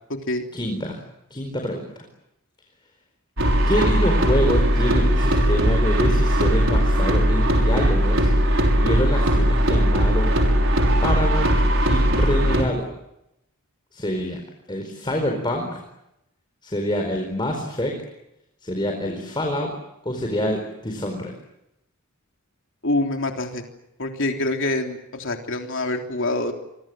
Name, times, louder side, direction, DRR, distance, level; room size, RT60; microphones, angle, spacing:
voice 1, 0.5-1.0 1.3-1.8 3.7-8.3 8.5-10.3 11.0-11.5 11.9-12.8 13.9-14.4 14.7-15.8 16.6-17.9 18.6-19.7 20.0-21.3, equal, 20° left, 3 dB, 4.5 m, -26 dB
sound 1, 3.4-12.6, equal, 60° right, 6.2 m, -19 dB
voice 2, 22.8-23.6 24.0-26.5, left 2 dB, 60° left, 3 dB, 3.5 m, -25 dB
30.0 x 24.5 x 7.8 m, 0.85 s
head